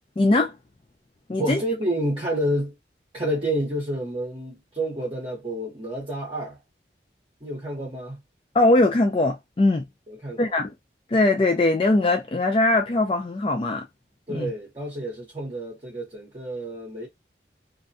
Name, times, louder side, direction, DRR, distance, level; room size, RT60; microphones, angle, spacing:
voice 1, 0.2-0.5 1.3-1.6 8.5-9.8 10.4-10.7 11.1-13.9 14.3-14.5, left 2 dB, 30° left, 0.4 m, -21 dB
voice 2, 1.4-2.7 3.1-6.6 7.4-8.2 10.1-10.6 14.3-17.1, right 1 dB, 30° right, 0.8 m, -29 dB
2.6 x 2.2 x 2.6 m
head